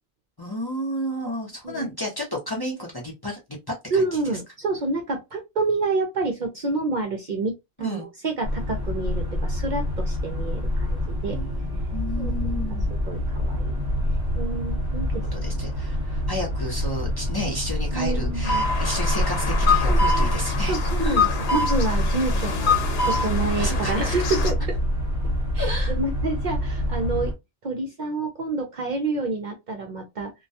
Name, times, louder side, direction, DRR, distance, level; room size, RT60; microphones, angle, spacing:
voice 1, 0.4-3.4 3.7-4.0 7.8-8.1 11.3-12.9 15.1-21.3 23.6-24.1 25.6-25.9, equal, 25° left, 0.6 m, -32 dB
voice 2, 3.9-11.4 12.2-12.3 12.9-13.8 14.4-15.5 17.9-18.6 19.9-20.3 20.7-22.8 23.0-24.8 25.5-27.3 27.6-30.3, right 3 dB, 55° right, 0.6 m, -28 dB
sound 1, 8.4-27.3, left 1 dB, 40° right, 1.1 m, -27 dB
sound 2, 18.4-24.5, left 2 dB, 75° left, 0.9 m, -24 dB
2.2 x 2.2 x 2.6 m
omnidirectional pair, 1.1 m